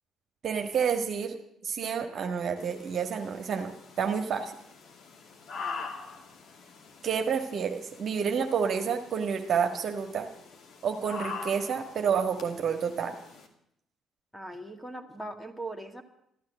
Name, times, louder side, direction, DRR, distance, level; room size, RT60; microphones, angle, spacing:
voice 1, 0.4-1.4 1.6-4.5 7.0-10.3 10.8-13.2, right 6 dB, 45° right, 5 dB, 1.5 m, -29 dB
sound 1, 2.6-13.5, left 4 dB, 50° left, 2.5 m, -44 dB
voice 2, 5.6-5.9 14.3-16.0, right 2 dB, 5° left, 6 dB, 2.2 m, -40 dB
13.5 x 13.0 x 7.7 m, 0.76 s
figure-of-eight pair, 45°, 0 cm